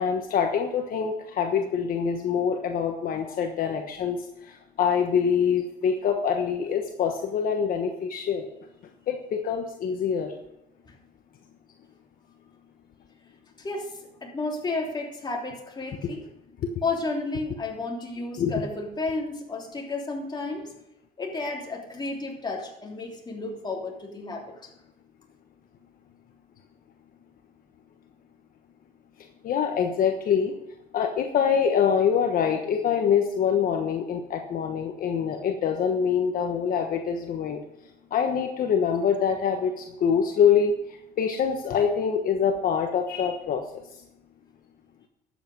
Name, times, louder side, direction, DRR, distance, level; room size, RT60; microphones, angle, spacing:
voice 1, 0.0-4.2 4.8-8.5 9.1-10.3 18.4-18.5 29.4-30.5 30.9-37.6 38.1-40.7 41.2-43.6, left 7 dB, 55° left, 4 dB, 1.2 m, -25 dB
voice 2, 13.6-13.9 14.2-16.2 16.8-20.7 21.2-24.5, left 3 dB, 25° left, -1 dB, 3.1 m, -32 dB
12.0 x 8.4 x 5.3 m, 0.86 s
cardioid pair, 110°, 17 cm